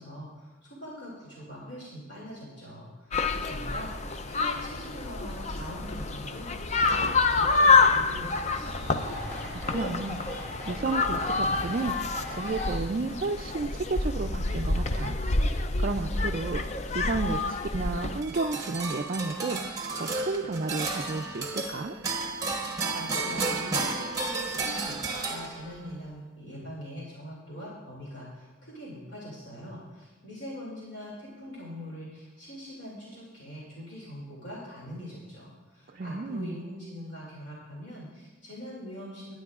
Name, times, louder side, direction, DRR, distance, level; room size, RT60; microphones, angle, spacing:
voice 1, 0.0-9.0 22.7-39.4, equal, 60° left, -5 dB, 2.6 m, -42 dB
sound 1, 3.1-18.2, left 3 dB, 35° left, 0.4 m, -27 dB
sound 2, 4.6-18.6, equal, 10° left, 4.0 m, -45 dB
voice 2, 9.5-15.2 15.8-22.0 35.9-36.6, right 3 dB, 45° right, 2 dB, 0.4 m, -32 dB
sound 3, 18.2-25.9, right 3 dB, 15° right, 1.0 m, -32 dB
21.0 x 9.3 x 2.4 m, 1.3 s
head